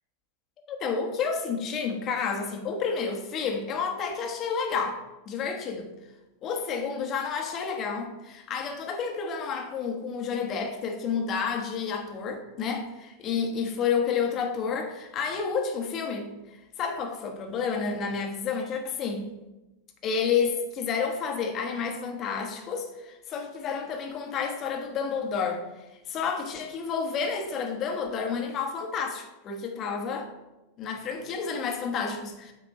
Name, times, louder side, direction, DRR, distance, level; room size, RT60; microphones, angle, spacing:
voice 1, 0.6-5.0 5.3-5.9 6.4-12.8 13.2-16.3 16.8-19.3 20.0-25.6 26.1-30.3 30.8-32.5, left 6 dB, 30° left, 3 dB, 1.2 m, -30 dB
8.8 x 3.6 x 5.2 m, 1.0 s
figure-of-eight pair, 90°, 0 cm